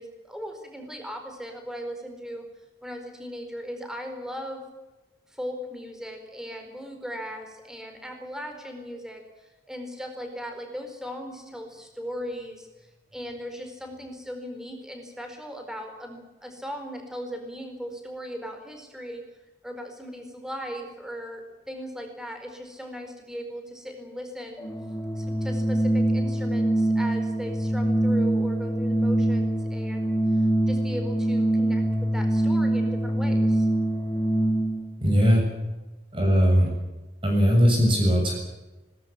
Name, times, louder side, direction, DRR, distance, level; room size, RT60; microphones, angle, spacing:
voice 1, 0.0-2.5 2.8-4.6 5.3-9.2 9.7-19.2 19.6-24.6 25.2-33.7, equal, 5° right, 5 dB, 4.5 m, -38 dB
Organ, 24.6-34.9, right 1 dB, 15° left, 2.1 m, -24 dB
voice 2, 35.0-35.4 36.1-36.7 37.2-38.3, equal, 30° right, 1 dB, 7.0 m, -19 dB
20.5 x 20.0 x 8.6 m, 1.1 s
head